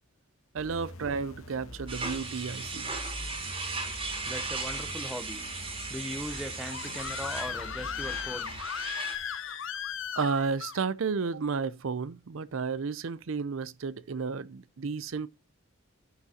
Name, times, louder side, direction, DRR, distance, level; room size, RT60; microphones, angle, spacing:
voice 1, 0.5-2.9 10.2-15.3, right 5 dB, 70° right, 0.5 m, -32 dB
sound 1, 0.6-8.6, left 1 dB, 80° left, 1.8 m, -45 dB
sound 2, 1.9-9.2, right 3 dB, 25° right, 2.3 m, -37 dB
voice 2, 4.2-5.5 5.9-8.5, equal, 5° right, 0.6 m, -39 dB
Screaming, 6.3-10.8, left 8 dB, 65° left, 0.7 m, -36 dB
11.0 x 6.7 x 2.8 m
head